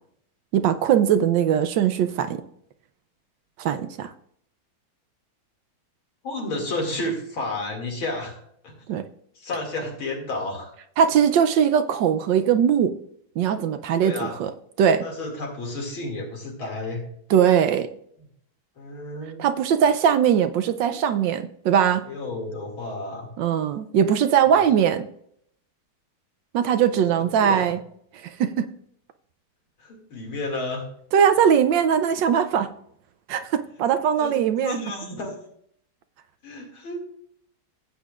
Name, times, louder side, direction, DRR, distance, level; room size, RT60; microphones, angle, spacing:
voice 1, 0.5-2.4 3.6-4.1 8.9-9.0 11.0-12.9 13.4-14.5 14.8-15.0 17.3-17.9 19.4-22.0 23.4-25.1 26.5-27.8 28.2-28.7 31.1-32.7 33.3-34.8, right 8 dB, 75° right, 10 dB, 1.2 m, -20 dB
voice 2, 6.2-8.8 9.4-10.7 14.0-14.4 15.0-17.0 18.8-19.4 22.0-23.3 27.4-27.7 29.8-30.8 34.2-35.4 36.4-37.0, left 2 dB, 80° left, 0 dB, 3.1 m, -31 dB
15.0 x 8.4 x 2.4 m, 0.68 s
omnidirectional pair, 2.2 m